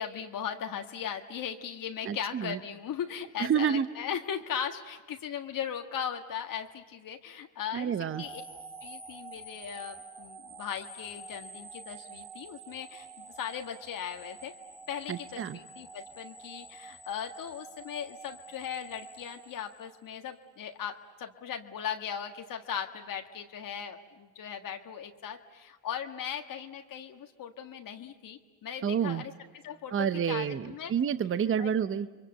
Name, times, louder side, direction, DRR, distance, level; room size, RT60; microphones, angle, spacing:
voice 1, 0.0-8.4 8.8-14.5 14.9-29.3 29.6-30.9 31.6-31.7, left 8 dB, 55° left, 5 dB, 1.6 m, -38 dB
voice 2, 2.0-2.6 3.4-3.9 7.7-8.3 15.1-15.6 28.8-29.2 29.9-32.3, right 8 dB, 30° right, 13 dB, 0.8 m, -29 dB
sound 1, 8.1-20.3, right 3 dB, 5° right, 3.6 m, -48 dB
30.0 x 23.0 x 7.9 m, 1.3 s
supercardioid pair, 70°, 40 cm